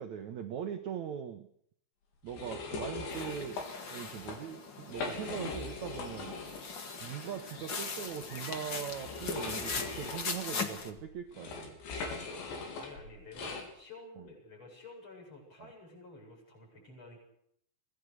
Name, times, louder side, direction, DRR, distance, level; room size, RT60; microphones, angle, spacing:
voice 1, 0.0-1.5 2.2-3.6 3.9-6.4 7.0-11.8 14.2-14.3 15.6-15.7, right 9 dB, 80° right, 6 dB, 1.6 m, -41 dB
sound 1, 2.3-3.7 4.1-4.4 4.8-6.7 7.0-7.1 8.1-13.7, left 4 dB, 85° left, 6.1 m, -40 dB
sound 2, 3.1-10.9, left 4 dB, 45° left, 1.5 m, -40 dB
voice 2, 12.7-17.2, left 2 dB, 25° left, 0 dB, 8.8 m, -51 dB
25.0 x 18.0 x 6.6 m, 0.68 s
omnidirectional pair, 5.0 m